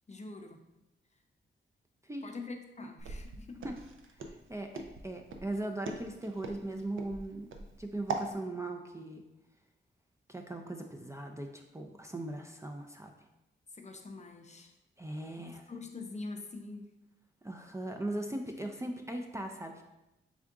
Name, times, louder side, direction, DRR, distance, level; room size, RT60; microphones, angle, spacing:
voice 1, 0.1-0.6 2.2-3.7 13.7-14.7 15.4-16.9, left 3 dB, 35° left, 5 dB, 0.5 m, -44 dB
Walk footsteps, 3.0-8.3, right 4 dB, 75° right, 0.5 m, -41 dB
voice 2, 4.3-7.5 7.8-9.2 10.3-13.1 15.0-15.7 17.4-19.8, right 1 dB, 15° right, 3 dB, 0.4 m, -39 dB
3.6 x 3.5 x 3.5 m, 0.93 s
cardioid pair, 70°, 20 cm